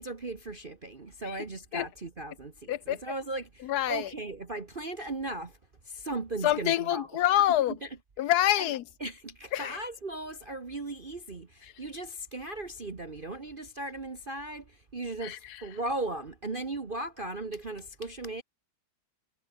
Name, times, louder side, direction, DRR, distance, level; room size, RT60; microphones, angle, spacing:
voice 1, 0.0-5.6 5.8-7.2 7.8-7.9 8.6-8.7 9.0-18.4, right 2 dB, 30° right, 1.4 m, -37 dB
voice 2, 2.7-3.0 3.6-4.1 6.4-7.8 8.2-8.8 9.5-9.8 15.2-15.4, left 13 dB, 65° left, 1.0 m, -26 dB
omnidirectional pair, 2.2 m